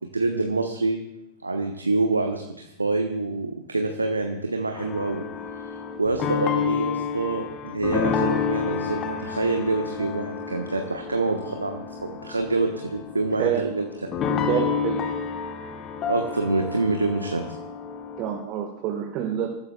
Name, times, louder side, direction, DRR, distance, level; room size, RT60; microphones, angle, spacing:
voice 1, 0.1-1.0 1.4-5.2 5.6-13.9 16.1-17.4, right 3 dB, 80° right, 4 dB, 1.1 m, -26 dB
sound 1, 4.7-18.4, left 6 dB, 30° left, 1.2 m, -30 dB
voice 2, 14.5-15.0 18.2-19.5, right 10 dB, 40° right, 2 dB, 1.5 m, -27 dB
26.5 x 14.0 x 2.3 m, 0.85 s
figure-of-eight pair, 90°, 0 cm